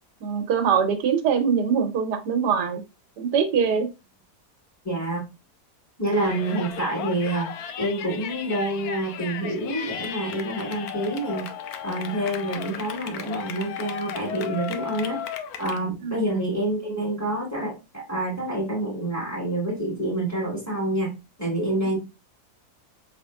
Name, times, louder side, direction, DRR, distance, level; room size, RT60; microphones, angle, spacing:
voice 1, 0.2-2.8 3.2-3.9 16.0-16.3, right 7 dB, 80° right, 7 dB, 1.3 m, -23 dB
voice 2, 4.8-5.2 6.0-7.5 7.8-11.5 11.8-15.2 15.6-22.0, right 1 dB, 10° left, -3 dB, 1.9 m, -27 dB
Yell, 6.1-15.8, left 9 dB, 70° left, 1.0 m, -35 dB
4.8 x 3.5 x 2.2 m, 0.26 s
omnidirectional pair, 1.8 m